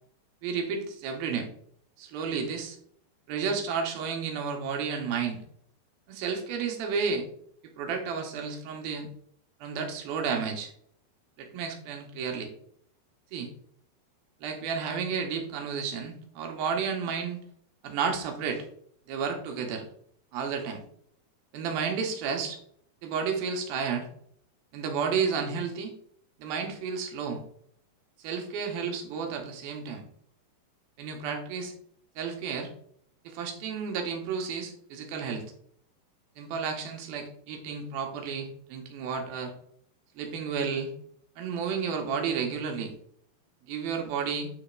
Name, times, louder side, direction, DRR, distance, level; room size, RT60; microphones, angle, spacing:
voice 1, 0.4-1.5 2.0-2.8 3.3-5.4 6.1-7.3 7.6-9.1 9.6-10.7 11.4-12.5 13.3-13.5 14.4-17.4 17.8-18.6 19.1-19.9 20.3-20.8 21.5-22.6 23.0-24.1 24.7-25.9 26.4-27.4 28.2-30.1 31.0-31.7 32.2-32.7 33.2-35.5 36.4-39.5 40.2-40.9 41.4-42.9 43.7-44.5, right 6 dB, 70° right, 3 dB, 2.7 m, -32 dB
9.0 x 3.6 x 4.6 m, 0.66 s
omnidirectional pair, 4.8 m